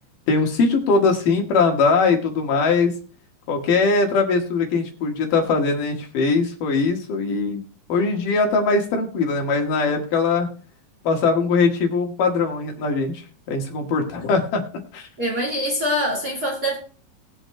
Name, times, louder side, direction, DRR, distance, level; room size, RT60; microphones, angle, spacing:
voice 1, 0.3-2.9 3.5-7.6 7.9-10.5 11.0-14.6 14.9-15.1, left 4 dB, 70° left, 3.2 m, -21 dB
voice 2, 15.2-16.8, equal, 35° right, 1.8 m, -24 dB
21.0 x 7.9 x 2.2 m
omnidirectional pair, 4.0 m